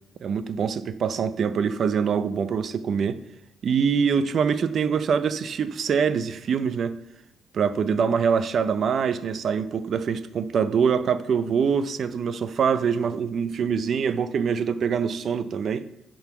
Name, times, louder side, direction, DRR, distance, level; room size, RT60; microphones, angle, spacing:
voice 1, 0.2-3.2 3.6-6.9 7.5-15.9, right 6 dB, 55° right, 0.5 m, -24 dB
10.5 x 4.0 x 6.8 m
cardioid pair, 90°, 0 cm